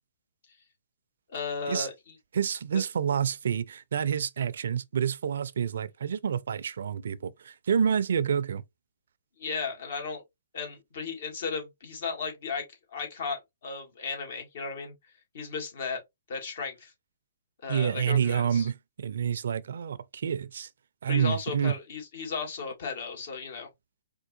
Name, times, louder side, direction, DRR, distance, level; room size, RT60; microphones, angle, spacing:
voice 1, 1.3-1.9 9.4-10.2 10.5-12.6 12.9-14.9 15.3-16.0 16.3-16.9 17.6-18.7 21.1-23.7, left 5 dB, 60° left, 1.6 m, -35 dB
voice 2, 2.3-8.6 17.7-20.7 21.0-21.8, right 8 dB, 70° right, 0.4 m, -28 dB
4.5 x 2.4 x 2.6 m
hypercardioid pair, 135°, 0 cm